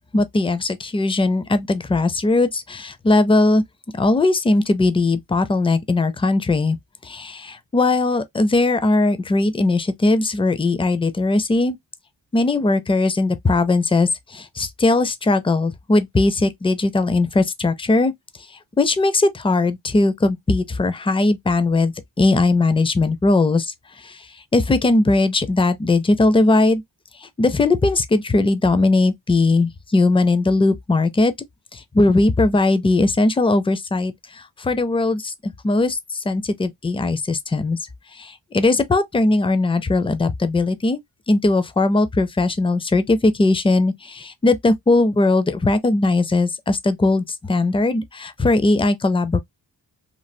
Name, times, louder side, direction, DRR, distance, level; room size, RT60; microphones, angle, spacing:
voice 1, 0.1-3.6 4.0-6.8 7.0-11.8 12.3-18.1 18.8-24.3 24.5-26.8 27.2-31.3 31.7-37.8 38.1-41.0 41.3-49.4, left 2 dB, 15° left, 0.4 m, -19 dB
3.2 x 2.3 x 2.6 m
wide cardioid pair, 75°, 43 cm